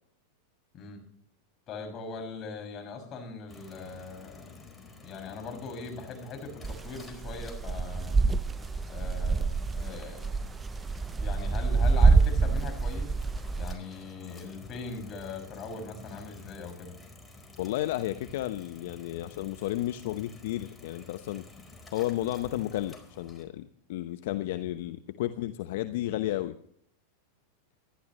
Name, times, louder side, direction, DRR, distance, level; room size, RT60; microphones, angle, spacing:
voice 1, 1.7-4.7 5.0-8.2 8.9-9.5 9.7-10.3 11.2-13.2 13.5-16.9, left 4 dB, 35° left, 3 dB, 6.5 m, -40 dB
sound 1, 3.5-23.4, left 2 dB, 10° left, 4.4 m, -51 dB
sound 2, 6.6-13.7, right 4 dB, 20° right, 0.5 m, -26 dB
voice 2, 17.6-21.4 21.9-26.5, left 14 dB, 65° left, 9 dB, 0.9 m, -32 dB
26.0 x 11.5 x 3.2 m, 0.64 s
hypercardioid pair, 95°, 0 cm